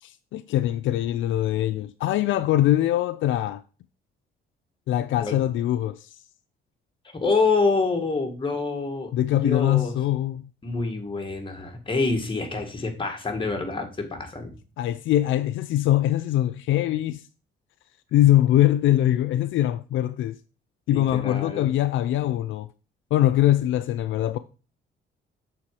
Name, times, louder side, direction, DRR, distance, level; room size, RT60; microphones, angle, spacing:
voice 1, 0.0-3.6 4.9-6.1 9.1-10.5 14.8-17.2 18.1-20.4 20.9-22.7 23.1-24.4, left 13 dB, 75° left, 0.4 m, -22 dB
voice 2, 7.1-9.9 10.6-14.6 20.9-21.7, left 3 dB, 25° left, 2.0 m, -26 dB
6.8 x 4.4 x 4.7 m
cardioid pair, 90°, 20 cm